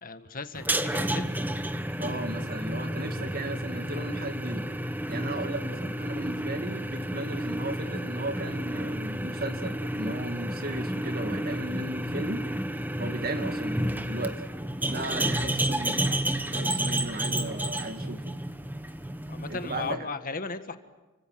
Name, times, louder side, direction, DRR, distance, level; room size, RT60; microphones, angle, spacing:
voice 1, 0.0-1.3 19.3-20.8, left 4 dB, 40° left, 9 dB, 1.6 m, -36 dB
sound 1, 0.5-19.9, right 1 dB, 10° right, 1.2 m, -31 dB
voice 2, 2.0-4.7 5.1-12.5 13.0-14.4 14.8-16.0 16.5-18.2 19.5-20.1, right 2 dB, 45° right, 7 dB, 2.5 m, -36 dB
29.5 x 25.0 x 7.7 m, 1.2 s
head